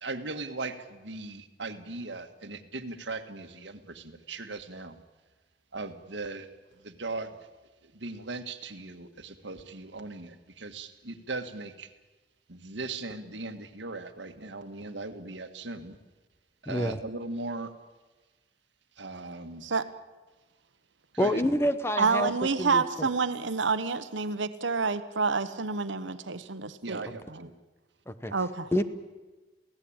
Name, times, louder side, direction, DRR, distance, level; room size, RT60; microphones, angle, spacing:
voice 1, 0.0-5.0 5.7-6.5 6.8-7.4 7.8-11.9 12.5-16.0 16.6-17.7 19.0-19.6 21.1-21.4 26.8-27.5, right 3 dB, 75° right, 8 dB, 1.7 m, -38 dB
voice 2, 16.7-17.0 21.2-23.1 28.1-28.3 28.7-28.8, equal, 15° left, 11 dB, 1.0 m, -28 dB
voice 3, 22.0-27.4 28.3-28.7, right 4 dB, 90° right, 11 dB, 1.1 m, -28 dB
28.0 x 17.0 x 8.8 m, 1.2 s
head